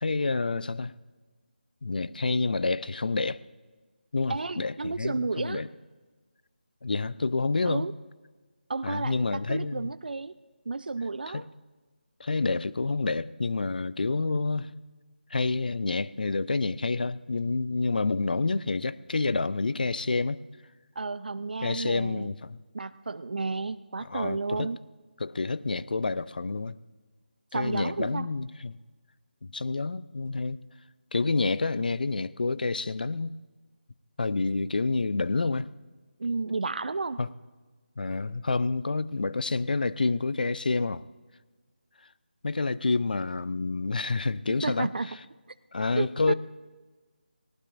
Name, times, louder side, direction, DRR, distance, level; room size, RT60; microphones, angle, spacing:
voice 1, 0.0-0.9 1.8-3.4 4.1-5.7 6.8-7.8 8.8-9.9 11.3-11.5 12.2-14.7 15.3-20.4 21.6-22.6 24.0-24.7 25.2-26.8 27.5-28.8 29.4-30.6 31.1-33.4 34.2-35.7 37.2-37.3 38.0-41.0 42.4-44.9 45.7-46.3, left 3 dB, 55° left, 17 dB, 0.5 m, -28 dB
voice 2, 4.3-5.7 7.7-7.9 8.7-10.3 10.7-11.5 21.0-22.3 22.7-24.8 27.5-28.3 36.2-37.2 44.6-45.2 46.0-46.3, right 3 dB, 65° right, 14 dB, 0.5 m, -32 dB
18.5 x 18.5 x 2.6 m, 1.3 s
figure-of-eight pair, 160°, 5 cm